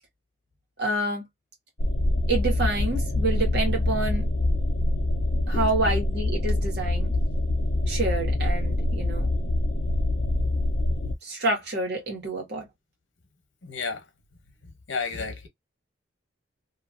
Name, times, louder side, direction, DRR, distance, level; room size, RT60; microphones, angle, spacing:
voice 1, 0.8-1.3 2.3-4.2 5.5-7.1 7.9-9.3 11.2-12.7, right 2 dB, 55° right, 1.4 m, -28 dB
sound 1, 1.8-11.1, left 1 dB, 40° left, 0.7 m, -25 dB
voice 2, 13.6-14.0 14.9-15.5, left 4 dB, 70° left, 0.9 m, -31 dB
2.8 x 2.6 x 2.5 m
head